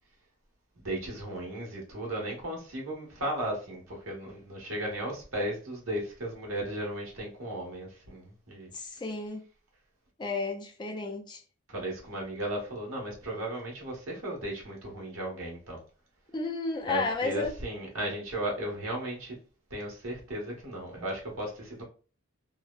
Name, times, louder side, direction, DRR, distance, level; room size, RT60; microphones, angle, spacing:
voice 1, 0.7-8.7 11.7-15.8 16.9-19.3 19.7-21.8, right 1 dB, 80° right, 1.1 m, -35 dB
voice 2, 8.7-9.4 10.2-11.4 16.3-17.5, left 3 dB, 20° left, 0.4 m, -32 dB
3.1 x 2.0 x 2.2 m
head